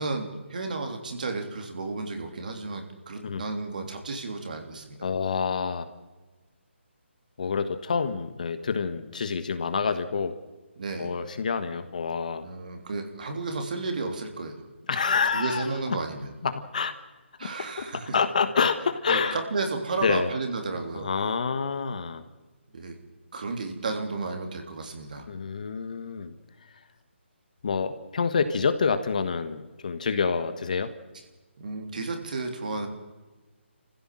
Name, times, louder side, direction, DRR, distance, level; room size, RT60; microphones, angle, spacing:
voice 1, 0.0-5.1 10.8-11.1 12.4-14.6 15.3-16.3 17.4-18.2 19.1-21.1 22.7-23.0 23.3-25.3 31.6-32.9, right 3 dB, 40° right, 4 dB, 3.3 m, -32 dB
voice 2, 5.0-5.9 7.4-10.3 11.0-12.5 14.9-16.0 16.4-16.9 17.4-19.4 20.0-20.3 20.9-22.3 25.3-26.3 27.6-30.9, left 5 dB, 40° left, 10 dB, 1.4 m, -27 dB
28.0 x 15.5 x 7.7 m, 1.2 s
hypercardioid pair, 175°, 7 cm